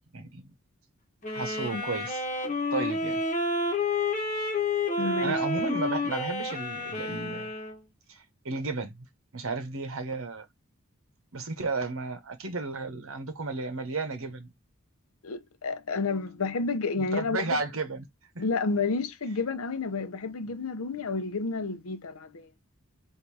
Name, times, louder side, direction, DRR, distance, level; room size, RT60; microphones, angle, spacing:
voice 1, 0.1-0.5 1.3-2.2 2.7-3.2 5.2-7.5 8.1-9.1 9.3-10.4 11.3-14.5 17.0-18.1 18.3-18.4, right 3 dB, 80° right, 1.0 m, -33 dB
sound 1, 1.2-7.8, left 2 dB, 35° left, 1.1 m, -30 dB
voice 2, 5.0-5.4 15.2-17.6 18.4-22.5, left 4 dB, 90° left, 0.7 m, -30 dB
3.7 x 2.7 x 4.6 m
head